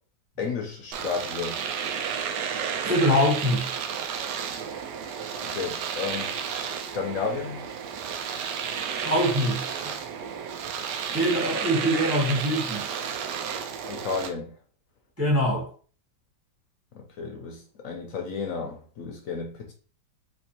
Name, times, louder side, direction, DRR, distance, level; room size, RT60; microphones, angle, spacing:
voice 1, 0.4-1.6 5.4-6.3 6.8-7.7 13.8-14.5 16.9-19.7, left 5 dB, 65° left, 0.9 m, -32 dB
Domestic sounds home sounds, 0.9-14.3, right 7 dB, 90° right, 1.2 m, -32 dB
voice 2, 2.8-3.7 9.0-9.8 11.1-12.8 15.2-15.7, equal, 15° right, 0.5 m, -23 dB
4.3 x 2.5 x 2.8 m
omnidirectional pair, 1.8 m